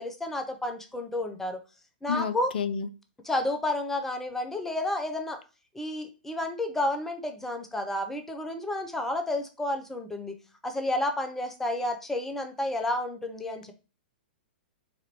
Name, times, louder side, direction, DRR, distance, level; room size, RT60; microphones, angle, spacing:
voice 1, 0.0-1.6 2.0-2.5 3.2-5.4 5.7-10.4 10.6-13.7, left 1 dB, 5° left, 5 dB, 0.6 m, -31 dB
voice 2, 2.1-2.9, left 6 dB, 70° left, 12 dB, 0.5 m, -30 dB
4.1 x 2.5 x 2.9 m, 0.32 s
hypercardioid pair, 115°, 5 cm